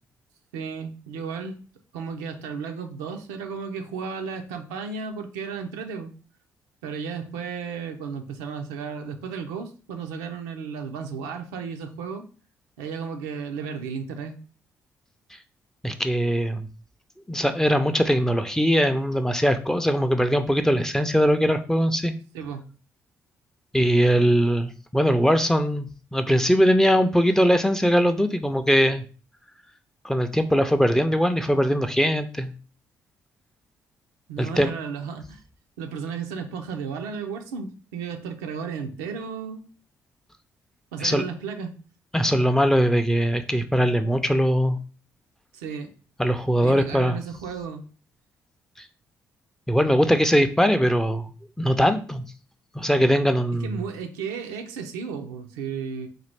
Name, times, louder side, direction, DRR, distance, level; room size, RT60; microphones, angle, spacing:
voice 1, 0.5-1.6 1.9-6.1 6.8-12.3 12.8-14.3 22.3-22.6 34.3-35.4 35.8-39.7 40.9-41.7 45.5-45.9 46.6-47.8 53.6-56.1, right 6 dB, 75° right, 5 dB, 0.5 m, -34 dB
voice 2, 15.8-16.7 17.3-22.1 23.7-29.0 30.0-32.5 34.4-34.7 41.0-41.2 42.1-44.8 46.2-47.2 49.7-51.3 51.6-52.2 52.7-53.8, equal, 5° left, 8 dB, 0.5 m, -21 dB
4.0 x 2.4 x 3.3 m, 0.38 s
figure-of-eight pair, 45°, 8 cm